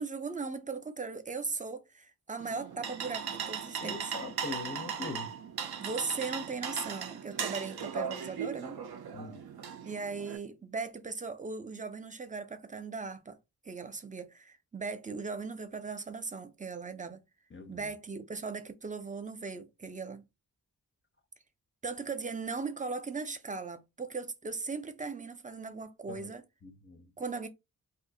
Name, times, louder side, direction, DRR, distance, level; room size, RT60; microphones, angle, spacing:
voice 1, 0.0-4.1 5.8-8.8 9.8-13.4 13.7-17.2 17.7-20.2 21.8-26.4 27.2-27.5, right 4 dB, 20° right, 0.4 m, -38 dB
sound 1, 2.4-10.4, right 7 dB, 75° right, 0.6 m, -38 dB
voice 2, 3.8-5.3 9.1-9.4 17.5-17.9 26.1-26.3 26.6-27.1, left 4 dB, 35° left, 0.5 m, -42 dB
2.6 x 2.4 x 3.8 m
wide cardioid pair, 130°, 38 cm